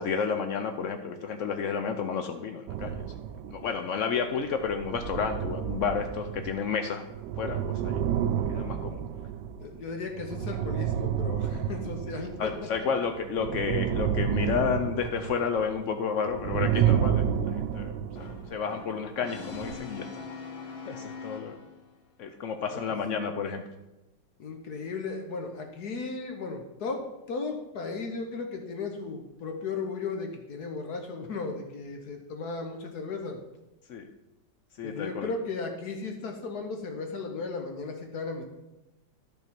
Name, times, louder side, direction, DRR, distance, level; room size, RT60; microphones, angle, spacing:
voice 1, 0.0-3.0 3.5-7.1 7.4-8.0 8.5-9.0 12.4-17.2 17.5-17.9 18.5-20.0 20.9-21.6 22.2-23.6 33.9-34.1 34.8-35.3, left 6 dB, 90° left, 7 dB, 0.6 m, -31 dB
sound 1, 2.7-4.0 4.5-12.8 13.2-16.0 16.3-18.7 19.5-19.8, right 9 dB, 75° right, 1.1 m, -30 dB
voice 2, 9.6-12.9 22.7-23.0 24.4-33.4 34.8-38.4, left 4 dB, 60° left, 4 dB, 1.4 m, -36 dB
Brass instrument, 18.2-22.0, left 4 dB, 40° left, 1.0 m, -42 dB
11.0 x 4.6 x 5.9 m, 0.98 s
omnidirectional pair, 2.1 m